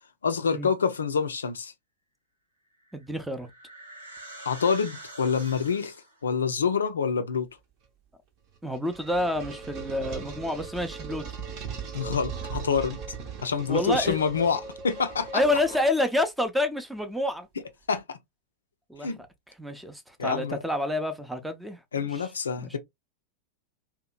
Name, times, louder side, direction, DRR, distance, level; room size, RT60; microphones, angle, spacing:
voice 1, 0.2-1.7 4.5-5.9 6.2-7.5 11.9-13.0 13.4-15.4 17.9-18.2 19.0-19.2 20.2-20.6 21.9-22.8, left 6 dB, 70° left, 0.4 m, -27 dB
Ghost Fx, 2.8-6.3, right 1 dB, 80° right, 1.1 m, -45 dB
voice 2, 2.9-3.5 8.6-11.2 13.7-14.2 15.3-17.5 18.9-19.1 19.5-21.8 22.1-22.3 22.6-22.8, left 1 dB, 5° right, 0.5 m, -28 dB
sound 1, 8.5-16.2, right 5 dB, 40° right, 0.7 m, -38 dB
2.8 x 2.1 x 2.3 m
figure-of-eight pair, 90°, 0 cm